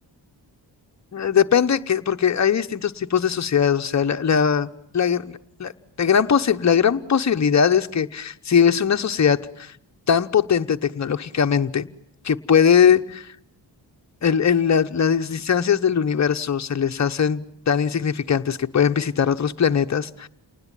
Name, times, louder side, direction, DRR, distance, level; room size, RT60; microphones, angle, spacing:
voice 1, 1.1-4.7 4.9-5.7 6.0-9.7 10.1-11.9 12.2-13.3 14.2-20.3, left 7 dB, 40° left, 7 dB, 1.0 m, -20 dB
28.5 x 19.5 x 9.0 m, 0.73 s
wide cardioid pair, 115°, 42 cm